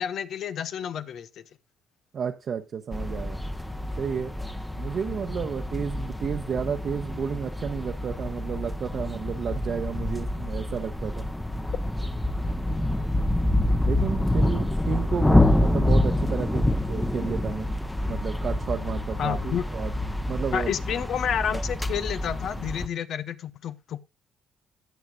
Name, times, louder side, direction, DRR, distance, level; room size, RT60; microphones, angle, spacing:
voice 1, 0.0-1.4 19.2-19.6 20.5-24.0, left 8 dB, 65° left, 0.8 m, -30 dB
voice 2, 2.1-3.4 4.0-4.3 4.8-11.3 13.8-17.7 18.1-19.9 20.3-20.7, right 7 dB, 55° right, 1.0 m, -32 dB
sound 1, 2.9-22.9, left 1 dB, 10° left, 0.9 m, -27 dB
16.5 x 7.2 x 2.4 m
supercardioid pair, 60°, 0 cm